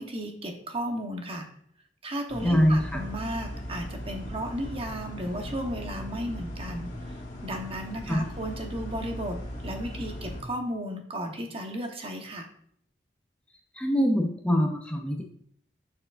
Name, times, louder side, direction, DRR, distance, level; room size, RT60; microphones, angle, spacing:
voice 1, 0.0-1.5 2.0-6.9 7.4-12.5, right 1 dB, 30° right, 3 dB, 1.0 m, -34 dB
sound 1, 2.3-10.4, equal, 45° left, 1.9 m, -38 dB
voice 2, 2.4-3.0 8.1-8.2 13.8-15.2, equal, 5° left, 1 dB, 0.6 m, -24 dB
6.9 x 6.5 x 2.5 m, 0.64 s
head